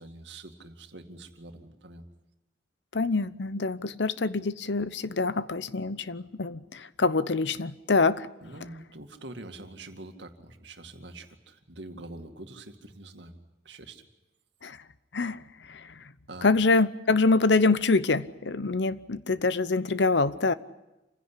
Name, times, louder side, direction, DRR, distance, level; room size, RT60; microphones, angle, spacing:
voice 1, 0.0-2.0 8.4-13.3 13.6-14.1 16.3-16.5, right 2 dB, 75° right, 2.2 m, -45 dB
voice 2, 2.9-8.3 14.6-14.8 15.1-15.4 15.7-15.8 16.4-20.5, left 3 dB, 70° left, 0.8 m, -25 dB
27.5 x 16.0 x 10.0 m
head